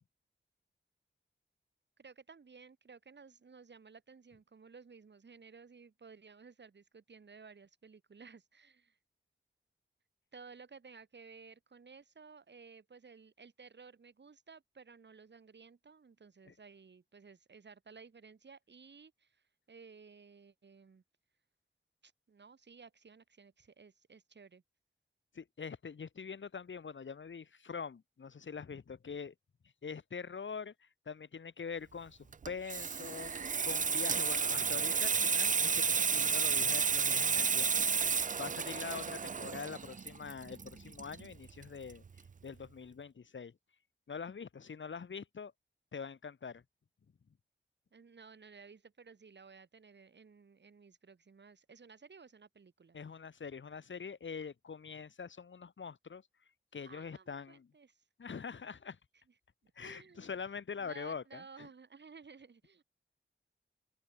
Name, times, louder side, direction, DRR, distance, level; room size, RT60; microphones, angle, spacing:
voice 1, 2.0-9.0 10.3-21.0 22.0-24.6 47.9-53.0 56.9-58.0 59.1-59.2 59.8-60.4 60.8-62.8, right 5 dB, 65° right, 2.9 m, -56 dB
voice 2, 25.3-29.3 29.8-37.7 38.0-42.0 42.4-43.6 44.1-45.5 45.9-46.6 52.9-56.3 56.7-57.7 58.2-59.0 59.8-61.7, left 6 dB, 75° left, 2.4 m, -44 dB
Water tap faucet / Sink (filling or washing), 32.3-41.6 41.9-42.2, right 6 dB, 40° right, 0.5 m, -32 dB
wide cardioid pair, 75°, 20 cm